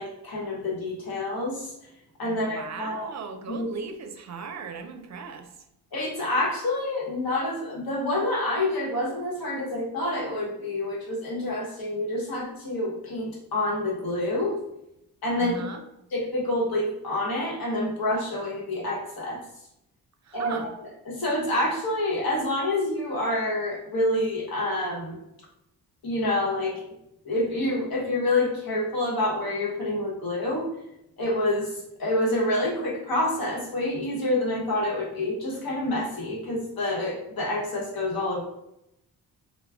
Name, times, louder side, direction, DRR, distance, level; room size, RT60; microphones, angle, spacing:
voice 1, 0.0-1.7 2.2-3.1 3.5-3.7 5.9-14.6 15.2-15.6 16.1-19.4 20.3-20.6 21.1-25.2 26.0-26.8 27.2-30.7 31.2-38.4, left 1 dB, 65° left, -3 dB, 1.1 m, -27 dB
voice 2, 2.2-5.7 15.4-15.8 20.2-20.7, right 5 dB, 45° right, 6 dB, 0.5 m, -38 dB
2.3 x 2.2 x 3.4 m, 0.84 s
cardioid pair, 60°, 39 cm